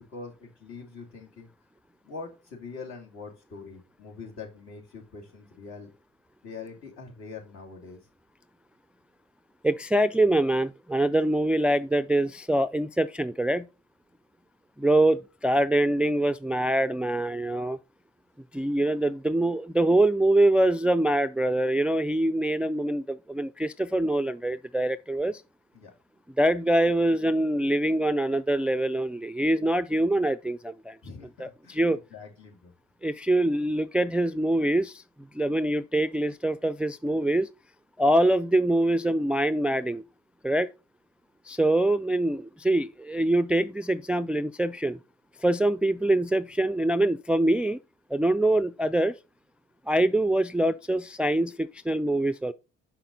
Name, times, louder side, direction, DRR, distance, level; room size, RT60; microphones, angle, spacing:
voice 1, 0.0-1.5 2.0-5.9 6.4-8.0 25.7-25.9 31.0-32.7, left 4 dB, 65° left, 2.8 m, -43 dB
voice 2, 9.6-13.7 14.8-17.8 18.5-25.4 26.4-31.0 31.4-32.0 33.0-35.0 35.3-37.5 38.0-40.0 40.4-40.7 41.5-45.0 45.4-47.8 48.1-49.1 49.9-52.5, right 1 dB, 5° right, 0.3 m, -24 dB
6.2 x 5.8 x 4.0 m
supercardioid pair, 65°, 29 cm